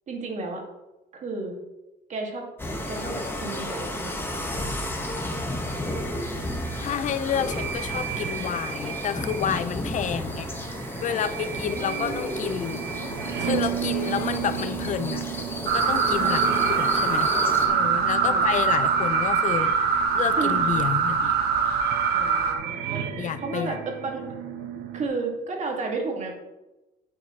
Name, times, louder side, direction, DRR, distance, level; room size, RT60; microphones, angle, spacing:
voice 1, 0.1-0.6 1.1-1.5 2.1-2.5 2.9-4.4 7.4-7.7 9.9-10.3 11.1-12.5 16.2-16.8 18.2-18.5 20.4-20.8 22.1-24.4 24.9-26.3, right 3 dB, 45° right, 1 dB, 2.3 m, -33 dB
sound 1, 2.6-17.7, left 1 dB, 15° left, 1.6 m, -33 dB
sound 2, 5.9-25.1, right 9 dB, 85° right, 1.1 m, -35 dB
voice 2, 6.8-10.5 11.0-12.8 13.4-15.2 15.7-16.4 16.7-17.3 17.7-19.8 20.1-21.3 23.2-23.8, left 8 dB, 50° left, 12 dB, 0.5 m, -29 dB
sound 3, 15.7-22.5, right 5 dB, 70° right, 1.6 m, -23 dB
9.3 x 8.5 x 3.2 m, 1.0 s
cardioid pair, 110°, 17 cm